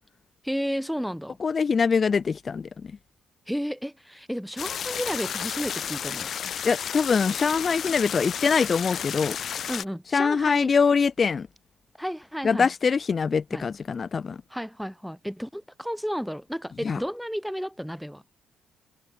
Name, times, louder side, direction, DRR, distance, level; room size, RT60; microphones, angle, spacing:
voice 1, 0.4-1.4 3.5-6.3 9.7-10.7 12.0-12.7 13.5-13.7 14.5-18.2, equal, ahead, 7.6 m, -32 dB
voice 2, 1.4-2.9 6.6-9.4 10.1-11.5 12.4-14.4 16.8-17.0, left 5 dB, 40° left, 1.6 m, -23 dB
sound 1, 4.6-9.8, left 8 dB, 60° left, 2.9 m, -32 dB
cardioid pair, 90°, 0 cm